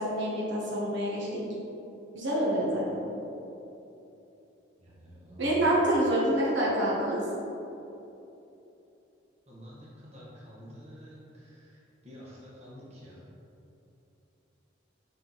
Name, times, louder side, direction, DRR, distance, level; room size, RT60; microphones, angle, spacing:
voice 1, 0.0-1.4 2.1-2.8 5.4-7.2, right 1 dB, 70° right, -5 dB, 1.2 m, -27 dB
voice 2, 4.8-5.7 9.5-13.2, equal, 35° right, -7 dB, 1.2 m, -48 dB
5.9 x 4.3 x 3.9 m, 2.9 s
head